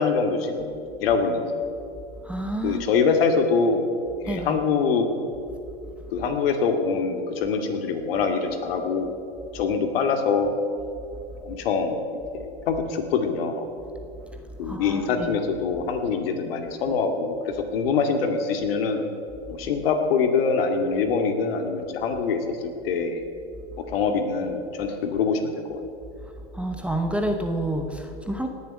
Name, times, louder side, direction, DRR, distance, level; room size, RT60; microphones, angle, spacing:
voice 1, 0.0-1.6 2.6-3.9 4.2-5.1 6.1-9.1 9.5-10.5 11.4-12.0 12.3-13.7 14.6-19.0 19.5-23.2 23.9-25.8, left 5 dB, 60° left, 5 dB, 2.3 m, -24 dB
voice 2, 2.2-3.0 4.3-4.6 14.6-15.4 26.5-28.5, right 1 dB, 5° right, 4 dB, 0.8 m, -29 dB
18.0 x 7.4 x 9.8 m, 2.6 s
hypercardioid pair, 135°, 32 cm